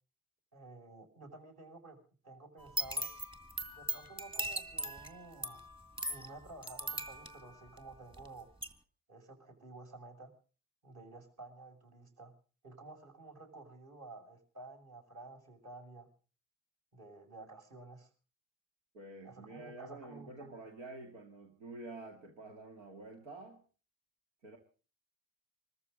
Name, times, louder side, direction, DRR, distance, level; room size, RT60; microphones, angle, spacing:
voice 1, 0.5-2.0 2.2-3.1 3.7-5.6 6.1-8.5 9.1-10.3 10.8-12.3 12.6-16.1 16.9-18.1 19.2-20.6, right 2 dB, 45° right, 2 dB, 6.3 m, -52 dB
sound 1, 2.6-8.3 8.6-8.7, right 1 dB, 15° right, 2.0 m, -39 dB
voice 2, 18.9-23.6 24.4-24.6, right 2 dB, 80° right, 2 dB, 2.4 m, -49 dB
25.0 x 14.0 x 3.8 m, 0.38 s
hypercardioid pair, 60°, 37 cm